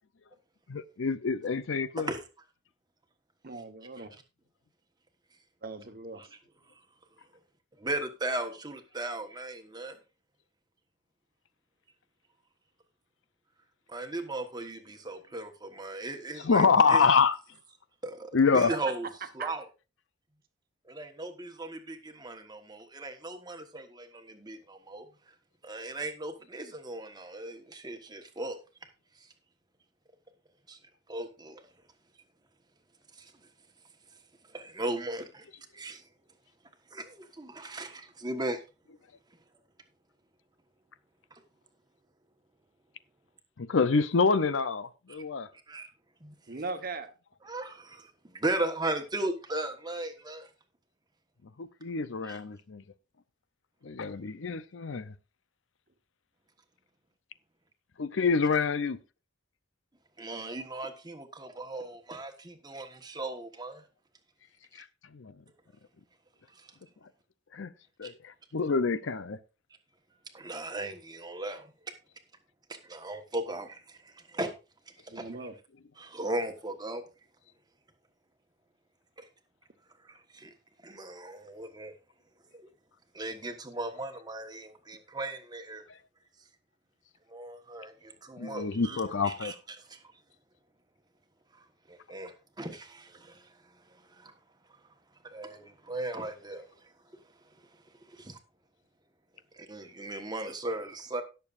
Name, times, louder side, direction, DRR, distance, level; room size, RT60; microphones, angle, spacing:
voice 1, 0.7-2.1 16.4-17.4 18.3-18.7 43.6-45.5 51.6-52.8 53.8-55.1 58.0-59.0 64.7-65.4 67.5-67.7 68.0-69.4 85.9-86.0 88.4-89.6, left 5 dB, 75° left, 0.6 m, -27 dB
voice 2, 3.4-4.1 5.6-6.3 18.8-18.9 19.4-19.5 46.5-47.1 75.1-75.5, right 3 dB, 50° right, 1.2 m, -39 dB
voice 3, 7.8-10.0 13.9-16.6 16.9-17.0 18.0-19.1 19.3-19.6 20.9-25.0 25.6-28.9 29.2-29.3 30.7-30.8 31.1-31.7 33.2-33.3 34.5-35.4 35.7-36.0 36.9-38.6 41.3-41.4 45.7-45.9 46.2-46.3 47.4-50.5 52.2-52.4 60.2-63.8 66.5-66.7 68.0-68.1 70.3-71.7 72.7-74.5 74.9-75.3 76.0-77.0 79.2-79.3 80.0-80.5 80.8-81.9 82.5-82.7 83.1-85.8 87.3-89.0 89.2-89.5 89.9-90.0 91.6-93.5 93.9-94.3 95.2-96.7 98.1-98.4 99.5-101.2, right 2 dB, 20° right, 1.3 m, -37 dB
18.0 x 6.8 x 2.5 m
head